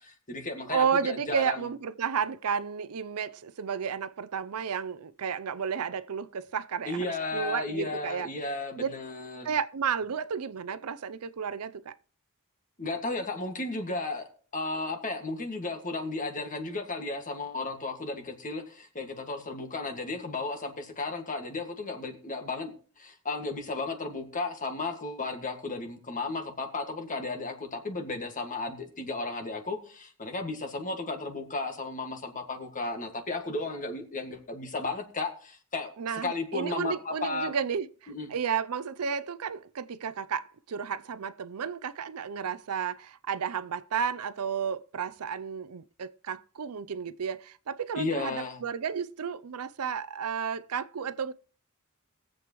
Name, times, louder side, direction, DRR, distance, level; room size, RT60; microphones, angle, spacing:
voice 1, 0.0-1.7 6.9-9.5 12.8-14.3 14.5-35.9 36.2-37.6 38.1-38.3 48.0-48.6, left 3 dB, 35° left, 1.9 m, -34 dB
voice 2, 0.7-8.3 8.8-8.9 9.4-12.0 36.0-37.9 38.3-51.3, right 7 dB, 90° right, 0.5 m, -32 dB
21.0 x 7.8 x 3.1 m
head